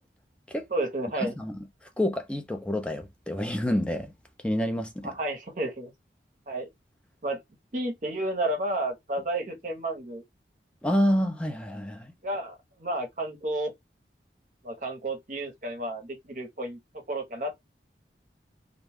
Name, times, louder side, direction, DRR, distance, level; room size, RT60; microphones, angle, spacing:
voice 1, 0.7-1.3 5.0-5.9 6.5-6.7 7.2-7.4 7.7-10.2 12.2-13.7 14.6-17.5, right 1 dB, 45° right, 0.8 m, -31 dB
voice 2, 1.2-1.6 2.0-4.1 4.4-5.1 10.8-12.1, equal, 5° left, 0.4 m, -28 dB
2.5 x 2.2 x 3.4 m
head